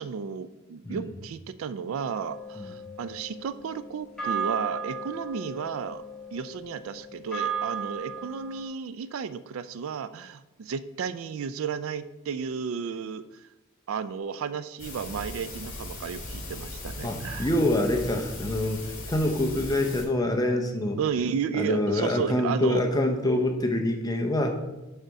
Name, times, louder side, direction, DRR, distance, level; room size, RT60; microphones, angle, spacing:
voice 1, 0.0-6.0 6.3-13.5 13.9-17.5 21.0-22.8, right 6 dB, 75° right, 14 dB, 0.4 m, -33 dB
sound 1, 2.0-8.6, right 5 dB, 5° left, 1.7 m, -35 dB
sound 2, 14.8-20.0, left 2 dB, 45° left, 2.5 m, -38 dB
voice 2, 17.0-18.8 19.1-21.0 21.6-24.5, left 1 dB, 20° left, 3 dB, 0.7 m, -25 dB
6.5 x 5.1 x 4.6 m, 1.0 s
head